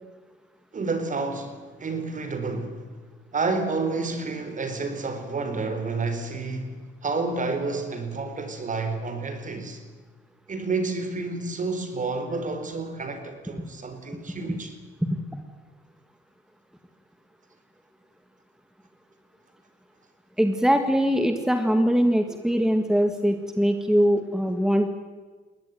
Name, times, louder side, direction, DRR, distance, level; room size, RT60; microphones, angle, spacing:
voice 1, 0.7-2.9 3.3-9.8 10.5-14.7, right 3 dB, 40° right, 4.2 m, -30 dB
voice 2, 15.0-15.4 20.4-24.9, equal, 5° right, 1.9 m, -22 dB
21.5 x 18.5 x 9.4 m
cardioid pair, 90°, 20 cm